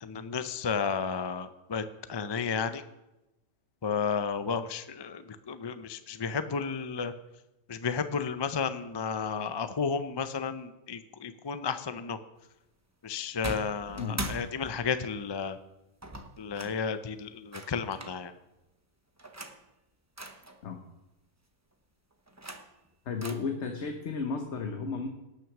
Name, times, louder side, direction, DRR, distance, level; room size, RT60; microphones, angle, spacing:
voice 1, 0.0-2.8 3.8-7.1 7.7-12.2 13.0-15.6 16.4-18.3, left 6 dB, 35° left, 11 dB, 0.4 m, -32 dB
sound 1, 13.4-15.1 16.0-16.8 17.5-18.2 19.2-19.6 20.2-20.6 22.1-22.9 23.2-23.3, right 1 dB, 15° right, 0.8 m, -40 dB
voice 2, 23.1-25.1, left 4 dB, 60° left, 4 dB, 1.3 m, -33 dB
18.0 x 6.3 x 6.0 m, 0.94 s
omnidirectional pair, 1.4 m